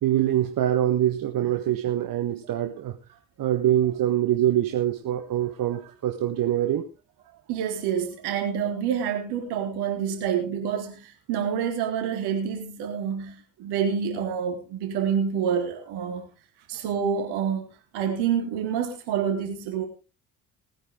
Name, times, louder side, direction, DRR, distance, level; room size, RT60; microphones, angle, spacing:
voice 1, 0.0-2.9 3.4-6.8, right 12 dB, 50° right, 6 dB, 1.6 m, -24 dB
voice 2, 7.5-10.9 11.3-16.2 16.7-17.7 17.9-19.9, right 7 dB, 65° right, 4 dB, 3.8 m, -27 dB
19.5 x 9.7 x 3.7 m, 0.32 s
hypercardioid pair, 50°, 42 cm